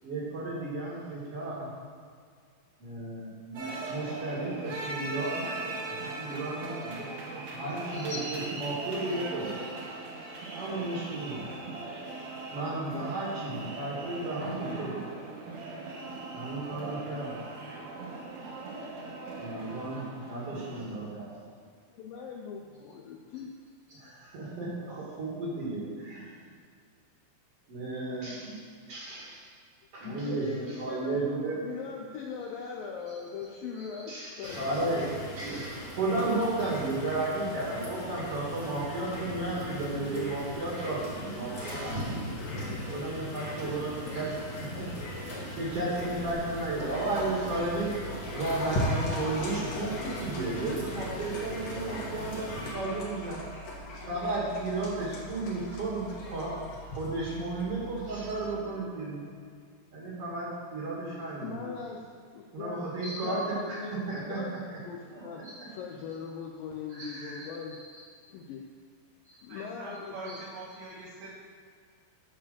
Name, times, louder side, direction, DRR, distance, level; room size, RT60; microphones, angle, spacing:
voice 1, 0.0-1.7 2.8-9.5 10.5-11.7 12.5-15.2 16.3-17.4 17.8-18.1 19.4-21.4 23.9-26.5 27.7-28.6 28.9-29.5 29.9-31.6 33.1-33.2 33.9-35.1 35.4-42.4 42.9-44.3 44.7-47.9 48.3-53.8 54.0-59.3 59.9-61.7 62.5-64.4 64.7-64.8 65.1-65.5 66.9-68.0 69.2-69.5 70.2-70.5, right 2 dB, 45° right, -5 dB, 2.4 m, -34 dB
sound 1, 3.5-20.9, right 3 dB, 60° right, 1.9 m, -39 dB
voice 2, 21.9-23.5 30.0-31.2 31.6-34.8 42.4-43.0 43.6-43.7 44.2-44.3 61.4-62.0 62.3-62.8 63.2-64.6 64.9-67.8 68.3-68.7 69.4-70.4, left 6 dB, 90° left, 0 dB, 2.0 m, -40 dB
sound 2, 34.4-52.7, equal, 35° left, 1.7 m, -39 dB
sound 3, 45.5-58.5, left 1 dB, 60° left, 3.2 m, -39 dB
voice 3, 69.5-71.3, right 2 dB, 80° right, -5 dB, 3.6 m, -43 dB
12.0 x 5.0 x 6.9 m, 2.1 s
omnidirectional pair, 5.0 m